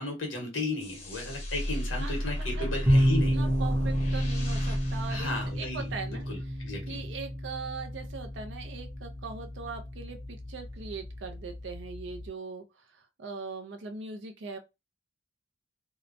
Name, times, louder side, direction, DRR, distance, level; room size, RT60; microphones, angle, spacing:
voice 1, 0.0-3.4 5.1-7.0, left 2 dB, 80° left, 1.1 m, -35 dB
sound 1, 0.8-6.1, equal, 35° left, 0.7 m, -33 dB
voice 2, 1.9-2.7 3.3-5.3 5.6-6.3 6.9-12.6 12.9-14.6, right 4 dB, 65° right, 0.5 m, -40 dB
sound 2, 2.8-12.3, equal, 15° right, 0.6 m, -31 dB
2.8 x 2.1 x 2.4 m
head